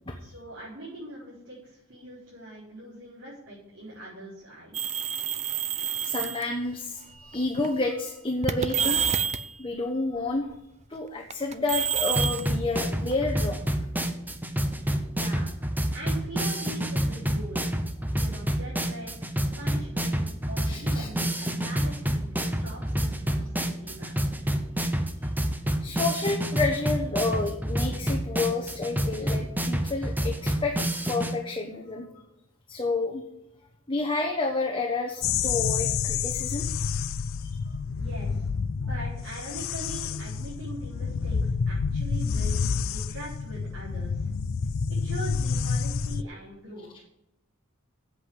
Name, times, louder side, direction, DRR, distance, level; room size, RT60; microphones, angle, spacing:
voice 1, 0.2-5.1 15.1-15.5 15.9-17.6 18.1-19.3 19.6-24.1 38.0-38.4 38.8-44.3 44.9-47.0, right 1 dB, 60° right, -8 dB, 4.8 m, -42 dB
sound 1, 4.7-6.4 7.3-7.7 8.4-9.5 11.3-13.4, right 7 dB, 30° right, 0.6 m, -28 dB
voice 2, 6.0-7.0 7.3-9.0 9.6-10.5 10.9-13.6 20.6-21.1 25.8-30.7 31.1-32.1 32.7-33.2 33.9-36.7 37.4-37.6, left 3 dB, 25° left, 1 dB, 1.3 m, -29 dB
sound 2, 12.2-31.3, equal, 10° right, 1.0 m, -28 dB
sound 3, 35.2-46.2, left 5 dB, 65° left, 0.4 m, -29 dB
8.3 x 7.9 x 8.2 m, 0.84 s
head